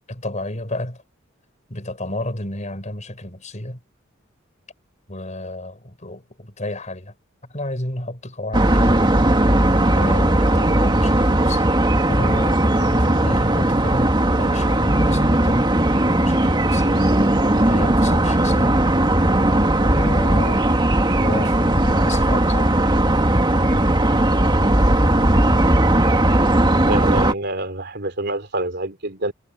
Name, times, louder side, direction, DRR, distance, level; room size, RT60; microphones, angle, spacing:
voice 1, 0.1-1.0 1.7-3.8 5.1-7.1 7.5-9.0 10.0-11.8 12.1-15.7 16.1-17.2 17.6-18.8 19.8-22.7, left 1 dB, 35° left, 4.9 m, -31 dB
sound 1, 8.5-27.3, right 1 dB, 25° right, 2.2 m, -17 dB
voice 2, 26.9-29.3, right 2 dB, 55° right, 3.6 m, -26 dB
head